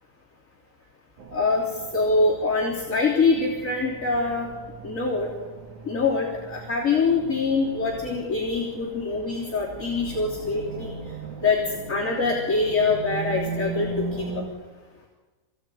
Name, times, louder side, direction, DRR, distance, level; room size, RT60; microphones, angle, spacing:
sound 1, 1.2-14.5, right 4 dB, 60° right, 2.2 m, -38 dB
voice 1, 1.3-1.6 1.9-4.5 4.8-5.3 5.8-10.9 11.4-11.6 11.9-14.3, left 3 dB, 20° left, -5 dB, 2.7 m, -24 dB
24.0 x 18.0 x 9.3 m, 1.3 s
omnidirectional pair, 5.7 m